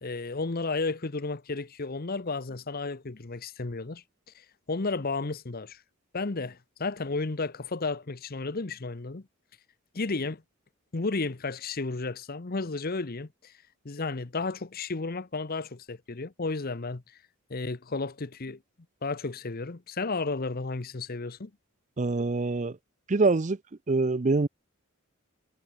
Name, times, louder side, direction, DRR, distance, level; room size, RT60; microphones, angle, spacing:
voice 1, 0.0-4.0 4.3-5.8 6.1-9.2 9.9-10.4 10.9-13.5 13.8-17.0 17.5-18.6 19.0-21.5, left 3 dB, 40° left, 0.8 m, -33 dB
voice 2, 22.0-22.8 23.1-23.6 23.9-24.5, right 3 dB, 35° right, 0.5 m, -24 dB
head